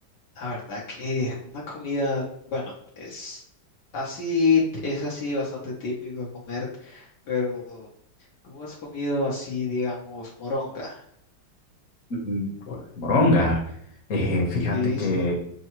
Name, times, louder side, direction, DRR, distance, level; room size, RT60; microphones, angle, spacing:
voice 1, 0.4-1.4 1.7-3.4 3.9-7.9 8.4-11.0 14.7-15.2, left 3 dB, 65° left, -4 dB, 1.4 m, -28 dB
voice 2, 12.2-13.6 14.1-15.4, left 2 dB, 50° left, -2 dB, 1.4 m, -23 dB
6.6 x 2.3 x 2.9 m, 0.69 s
omnidirectional pair, 2.0 m